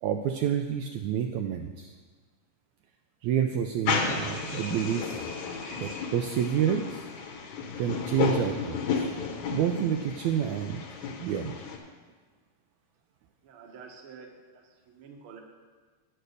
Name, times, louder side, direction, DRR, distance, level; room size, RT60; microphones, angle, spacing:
voice 1, 0.0-1.9 3.2-5.2 5.8-7.0 7.8-9.1 9.5-10.8 11.2-11.5, right 9 dB, 80° right, 4 dB, 1.7 m, -29 dB
sound 1, 3.9-11.8, left 5 dB, 70° left, 2.3 m, -33 dB
voice 2, 13.4-15.4, right 5 dB, 60° right, 2 dB, 1.5 m, -49 dB
10.0 x 6.8 x 6.5 m, 1.4 s
omnidirectional pair, 3.8 m